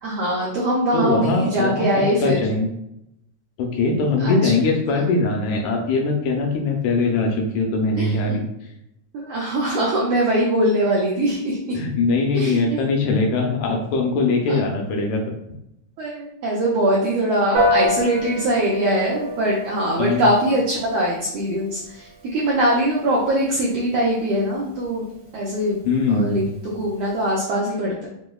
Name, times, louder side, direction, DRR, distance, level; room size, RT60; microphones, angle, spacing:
voice 1, 0.0-2.5 4.2-4.5 4.9-5.0 8.0-8.4 9.1-11.8 12.3-12.8 14.5-14.6 16.0-25.1 25.3-25.8 26.1-28.1, right 1 dB, 90° right, -4 dB, 1.4 m, -22 dB
voice 2, 0.9-1.9 2.2-2.7 3.6-8.4 11.8-15.2 20.0-20.3 25.9-26.4, left 3 dB, 80° left, 1 dB, 1.7 m, -21 dB
Piano, 17.5-27.3, left 1 dB, 60° right, 1.2 m, -30 dB
5.0 x 2.0 x 2.2 m, 0.81 s
omnidirectional pair, 3.5 m